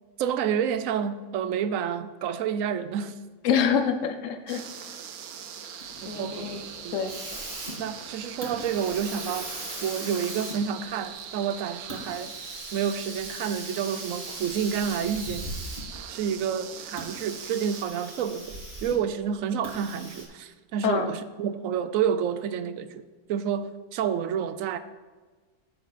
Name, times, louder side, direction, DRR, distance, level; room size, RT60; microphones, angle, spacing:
voice 1, 0.2-3.2 6.0-6.5 6.8-7.0 7.8-9.5 9.8-12.3 12.7-15.5 16.1-24.8, right 8 dB, 70° right, 12 dB, 1.0 m, -29 dB
voice 2, 3.4-4.6 6.1-6.6 6.9-7.1 20.8-21.1, left 7 dB, 65° left, 8 dB, 1.1 m, -26 dB
sound 1, 4.5-17.8, right 8 dB, 90° right, 1.2 m, -41 dB
Hiss, 5.8-16.1 16.9-19.1 19.6-20.2, right 1 dB, 35° right, 2.0 m, -40 dB
11.0 x 7.2 x 4.1 m, 1.4 s
omnidirectional pair, 1.5 m